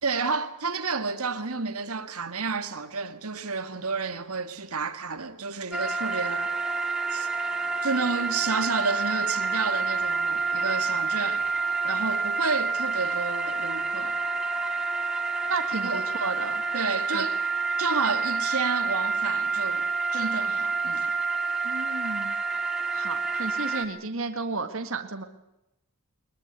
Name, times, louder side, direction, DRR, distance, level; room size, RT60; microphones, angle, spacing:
voice 1, 0.0-6.5 7.1-7.3 7.8-11.4 11.8-14.2 15.7-16.1 16.7-17.3 17.8-21.1, right 4 dB, 80° right, 2.0 m, -30 dB
sound 1, 5.7-23.9, right 4 dB, 5° right, 2.6 m, -28 dB
voice 2, 15.5-16.6 17.1-17.3 21.6-22.4 22.9-25.2, right 3 dB, 60° right, 1.9 m, -33 dB
22.5 x 21.5 x 8.2 m
head